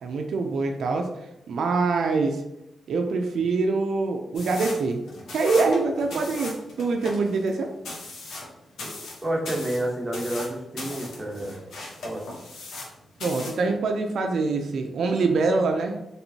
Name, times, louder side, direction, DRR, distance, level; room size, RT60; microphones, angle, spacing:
voice 1, 0.0-1.1 1.5-2.4 2.9-5.0 5.3-7.7 13.2-16.0, right 3 dB, 75° right, 4 dB, 0.4 m, -24 dB
sound 1, 4.3-12.9 13.2-13.6, left 2 dB, 90° left, 0.9 m, -38 dB
voice 2, 9.2-11.6 12.0-12.2, right 1 dB, 10° right, -2 dB, 1.0 m, -29 dB
4.4 x 3.2 x 2.7 m, 0.89 s
cardioid pair, 110°, 0 cm